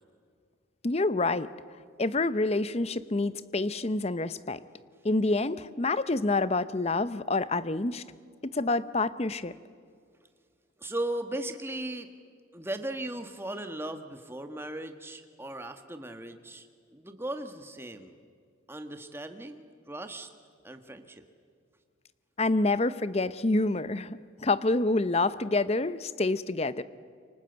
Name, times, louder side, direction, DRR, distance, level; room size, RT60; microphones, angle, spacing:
voice 1, 0.8-1.5 2.0-4.6 5.0-8.0 8.4-9.5 22.4-26.8, left 2 dB, 30° left, 15 dB, 0.7 m, -27 dB
voice 2, 10.8-12.1 12.5-16.7 16.9-18.1 18.7-20.3 20.6-21.2, right 1 dB, 10° right, 7 dB, 1.4 m, -37 dB
28.0 x 25.0 x 8.0 m, 2.1 s
head